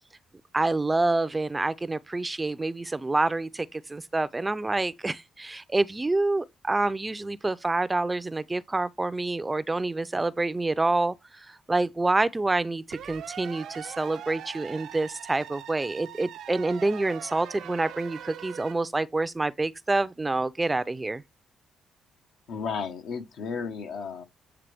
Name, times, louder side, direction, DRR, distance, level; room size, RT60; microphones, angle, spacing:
voice 1, 0.5-21.2, right 2 dB, 20° right, 0.4 m, -27 dB
sound 1, 12.9-18.7, right 10 dB, 75° right, 0.5 m, -42 dB
voice 2, 22.5-24.2, left 5 dB, 75° left, 1.1 m, -33 dB
8.1 x 3.4 x 3.4 m
cardioid pair, 90°, 0 cm